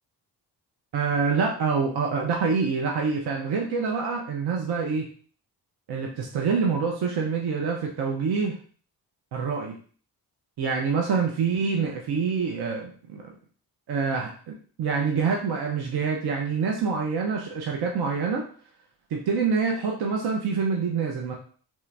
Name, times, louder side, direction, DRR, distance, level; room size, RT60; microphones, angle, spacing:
voice 1, 0.9-5.1 5.9-8.5 9.3-9.8 10.6-13.3 13.9-18.4 19.1-21.3, right 5 dB, 60° right, 0 dB, 0.7 m, -26 dB
3.0 x 2.3 x 3.2 m, 0.44 s
supercardioid pair, 45°, 43 cm